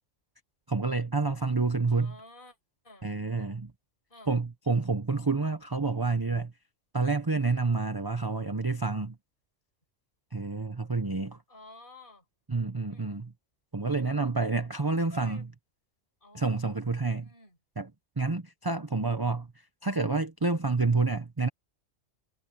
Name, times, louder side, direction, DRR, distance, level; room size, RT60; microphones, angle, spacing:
voice 1, 0.7-2.1 3.0-3.7 4.3-6.5 6.9-9.2 10.3-11.4 12.5-13.3 13.7-15.4 16.3-17.3 17.8-17.9 18.2-19.5 19.8-21.5, right 3 dB, 20° right, 0.7 m, -28 dB
voice 2, 1.9-2.6 2.8-3.1 4.1-4.3 11.5-12.3 12.9-13.1 15.0-15.5 16.2-16.6 17.2-17.6, left 2 dB, 40° left, 8.1 m, -51 dB
omnidirectional pair, 1.3 m